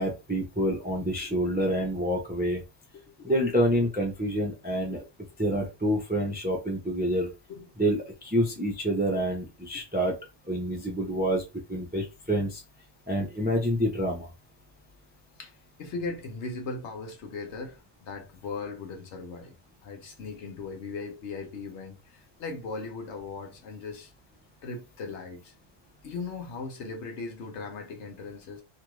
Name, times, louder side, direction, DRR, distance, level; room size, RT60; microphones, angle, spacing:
voice 1, 0.0-2.6 3.2-5.0 5.4-7.3 7.8-10.2 10.5-11.4 11.7-12.6 13.1-14.3, equal, 10° right, 0.4 m, -27 dB
voice 2, 2.9-3.3 4.9-5.1 7.5-7.7 15.4-19.5 19.8-24.1 24.6-25.5 26.0-28.6, left 4 dB, 65° left, 1.0 m, -38 dB
2.8 x 2.4 x 3.0 m
omnidirectional pair, 1.3 m